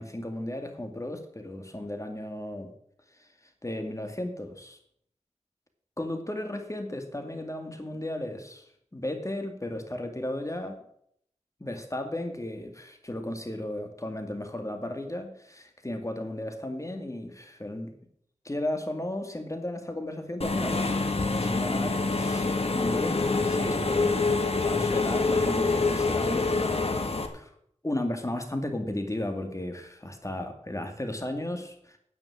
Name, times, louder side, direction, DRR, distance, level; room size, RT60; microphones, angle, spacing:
voice 1, 0.0-2.7 3.2-3.3 3.6-4.8 6.0-8.6 8.9-10.8 11.6-17.9 18.4-24.3 24.6-26.8 27.3-27.5 27.8-32.0, left 1 dB, 25° left, 5 dB, 2.1 m, -34 dB
Engine / Mechanisms, 20.4-27.3, left 3 dB, 55° left, 1.6 m, -26 dB
9.9 x 8.8 x 8.6 m, 0.69 s
wide cardioid pair, 75°, 13 cm